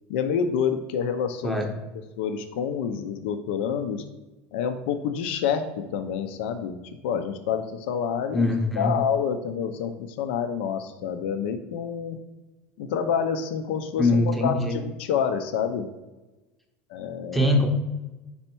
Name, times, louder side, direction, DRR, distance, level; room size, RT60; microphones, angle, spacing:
voice 1, 0.1-1.6 2.2-4.0 4.5-5.7 5.9-6.8 7.0-8.5 8.8-12.2 12.8-15.9 16.9-17.5, left 7 dB, 80° left, 8 dB, 0.6 m, -28 dB
voice 2, 8.3-9.0 14.0-14.8 17.3-17.7, left 2 dB, ahead, 3 dB, 0.7 m, -22 dB
5.5 x 4.3 x 4.4 m, 1.1 s
cardioid pair, 170°, 6 cm